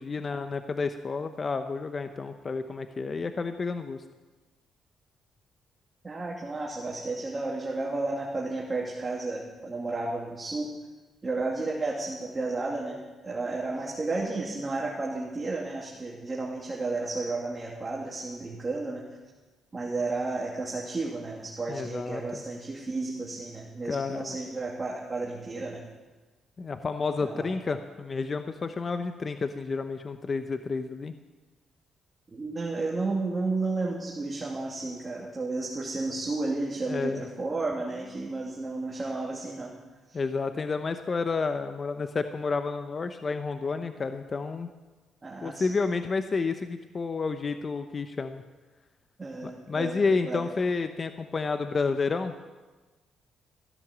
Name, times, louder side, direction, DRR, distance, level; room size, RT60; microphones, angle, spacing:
voice 1, 0.0-4.0 21.7-22.4 23.8-24.3 26.6-31.1 36.9-37.3 40.1-44.7 45.4-48.4 49.4-52.3, left 4 dB, 35° left, 8 dB, 0.8 m, -30 dB
voice 2, 6.0-10.7 11.2-19.0 19.7-25.8 27.2-27.5 32.3-39.8 40.1-40.2 45.2-45.8 49.2-50.0 50.2-50.5, right 3 dB, 25° right, -3 dB, 2.6 m, -32 dB
15.5 x 10.5 x 7.4 m, 1.2 s
cardioid pair, 90°, 0 cm